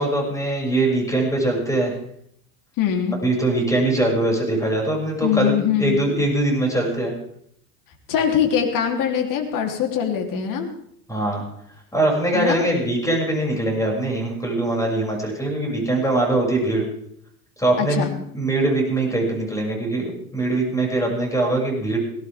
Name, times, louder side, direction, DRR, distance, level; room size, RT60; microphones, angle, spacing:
voice 1, 0.0-1.9 3.2-5.5 5.8-7.1 11.1-11.4 11.9-16.8 17.6-18.1 18.3-22.0, right 2 dB, 5° left, -1 dB, 7.3 m, -22 dB
voice 2, 2.8-3.2 5.2-6.0 8.1-10.7 12.3-12.6 17.8-18.1, left 8 dB, 45° left, 2 dB, 3.8 m, -22 dB
19.0 x 17.5 x 3.7 m, 0.72 s
hypercardioid pair, 90°, 45 cm